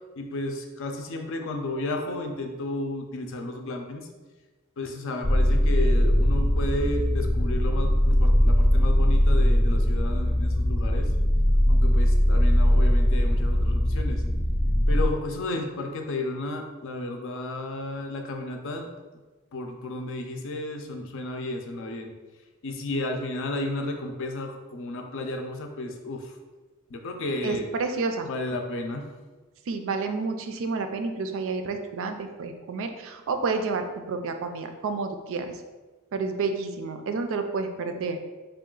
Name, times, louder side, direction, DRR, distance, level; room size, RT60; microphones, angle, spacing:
voice 1, 0.2-4.1 4.8-11.1 11.7-14.2 14.9-18.9 19.5-22.1 22.6-26.4 26.9-27.7 28.2-29.1, left 2 dB, 65° left, 4 dB, 0.5 m, -33 dB
sound 1, 5.2-15.0, equal, 20° left, 0.6 m, -21 dB
voice 2, 27.4-28.3 29.7-35.5 36.1-38.2, right 4 dB, 65° right, 6 dB, 0.4 m, -30 dB
3.8 x 2.4 x 3.7 m, 1.3 s
head